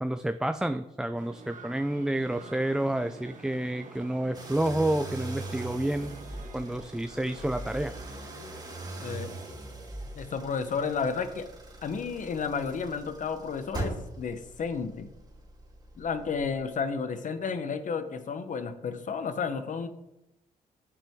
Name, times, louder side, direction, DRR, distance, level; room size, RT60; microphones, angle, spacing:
voice 1, 0.0-6.2 6.5-7.9, right 1 dB, 5° right, 9 dB, 0.4 m, -29 dB
sound 1, 1.2-9.5, right 4 dB, 55° right, 1.3 m, -49 dB
sound 2, 4.3-16.7, right 2 dB, 25° right, 2.5 m, -41 dB
voice 2, 10.2-11.5 11.8-15.1 16.0-19.9, left 5 dB, 55° left, 10 dB, 0.9 m, -32 dB
8.7 x 7.5 x 3.6 m, 0.89 s
cardioid pair, 75°, 15 cm